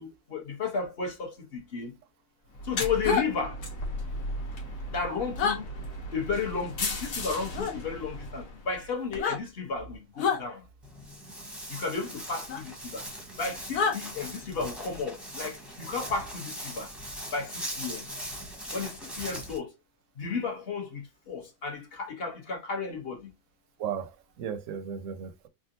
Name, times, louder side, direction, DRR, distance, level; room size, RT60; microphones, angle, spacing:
voice 1, 0.0-2.0 2.6-3.6 4.9-5.7 6.1-10.7 11.7-13.0 13.4-16.9 17.3-18.1 18.7-19.7 20.2-23.3, left 5 dB, 45° left, 1.0 m, -33 dB
sound 1, 2.5-8.9, left 1 dB, 65° left, 1.4 m, -36 dB
sound 2, 3.0-3.3 5.4-5.6 7.5-7.7 9.1-9.4 10.2-10.4 12.5-12.6 13.7-14.0, left 5 dB, 85° left, 1.3 m, -27 dB
Walk footsteps, 10.8-19.6, equal, ahead, 0.7 m, -40 dB
voice 2, 23.8-25.5, right 8 dB, 70° right, 0.8 m, -35 dB
3.7 x 2.3 x 2.6 m
omnidirectional pair, 1.6 m